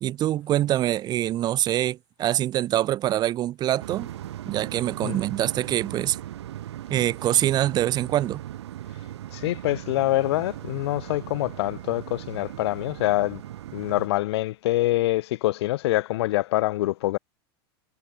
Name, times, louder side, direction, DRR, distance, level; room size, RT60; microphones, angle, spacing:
voice 1, 0.0-4.1 4.5-6.2 6.9-8.4, right 13 dB, 30° right, 0.6 m, -24 dB
sound 1, 3.8-14.1, right 12 dB, 90° right, 2.2 m, -38 dB
voice 2, 9.3-13.4 13.7-17.2, left 17 dB, 75° left, 1.1 m, -25 dB
supercardioid pair, 135°, 14 cm